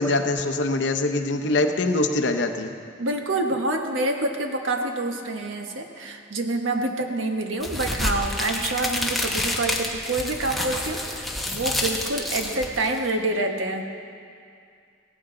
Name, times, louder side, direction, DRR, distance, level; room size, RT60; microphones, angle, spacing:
voice 1, 0.0-2.7, left 2 dB, 65° left, 6 dB, 0.8 m, -23 dB
voice 2, 3.0-13.9, right 2 dB, 85° right, 3 dB, 1.3 m, -27 dB
sound 1, 7.6-13.1, left 1 dB, ahead, 1.0 m, -28 dB
16.5 x 14.5 x 3.9 m, 2.4 s
head